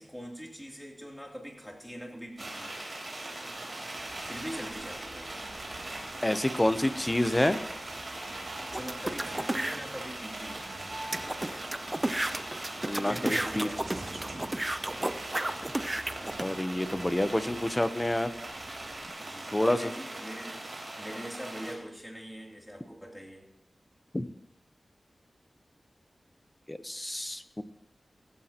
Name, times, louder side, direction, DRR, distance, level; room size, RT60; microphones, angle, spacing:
voice 1, 0.0-2.8 4.2-5.3 8.7-10.7 13.0-14.0 19.2-20.6 21.0-23.5, equal, ahead, -1 dB, 2.9 m, -42 dB
sound 1, 2.4-21.7, right 2 dB, 45° right, 3.6 m, -40 dB
sound 2, 4.0-19.1, right 2 dB, 80° right, 2.7 m, -49 dB
voice 2, 6.2-7.6 12.9-13.7 16.4-18.3 19.5-19.9 24.1-24.3 26.7-27.6, left 1 dB, 15° left, 11 dB, 0.7 m, -28 dB
sound 3, 8.7-9.8 10.4-10.5 10.7-10.8 11.1-16.4, right 1 dB, 20° right, 0.5 m, -32 dB
15.5 x 15.5 x 2.9 m, 0.85 s
wide cardioid pair, 90°, 0 cm